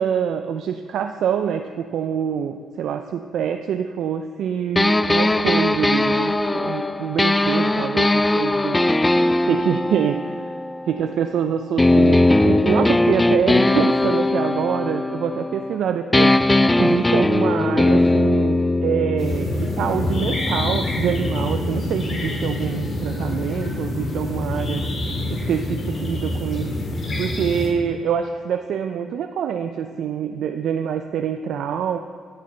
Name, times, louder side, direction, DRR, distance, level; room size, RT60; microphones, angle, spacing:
voice 1, 0.0-8.8 9.4-10.5 10.9-16.4 16.8-24.8 25.3-26.7 27.2-32.0, right 8 dB, 75° right, 7 dB, 0.4 m, -25 dB
sound 1, 4.8-11.3 11.8-15.8 16.1-21.9, left 2 dB, 15° left, 0.3 m, -20 dB
sound 2, 19.2-27.7, left 1 dB, 45° left, 1.9 m, -26 dB
12.5 x 6.6 x 4.3 m, 2.2 s
cardioid pair, 90°, 0 cm